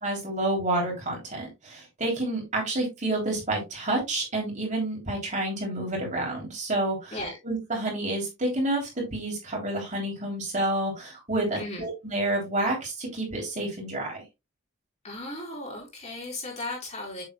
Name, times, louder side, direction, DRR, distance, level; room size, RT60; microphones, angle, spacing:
voice 1, 0.0-7.2 7.4-14.2, right 1 dB, 40° right, -1 dB, 3.2 m, -29 dB
voice 2, 11.6-11.9 15.0-17.2, left 1 dB, 35° left, -1 dB, 4.2 m, -36 dB
7.4 x 7.0 x 2.3 m, 0.22 s
head